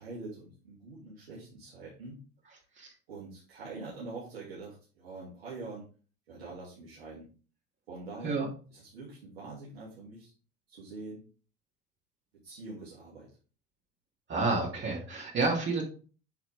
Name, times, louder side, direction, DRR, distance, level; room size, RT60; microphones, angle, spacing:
voice 1, 0.0-2.2 3.1-5.8 6.3-7.3 7.9-8.4 8.7-10.3 10.7-11.2 12.3-13.4, right 3 dB, 85° right, -7 dB, 3.0 m, -44 dB
voice 2, 14.3-15.8, right 3 dB, 40° right, -3 dB, 2.9 m, -29 dB
9.0 x 4.9 x 3.6 m, 0.38 s
hypercardioid pair, 75°, 29 cm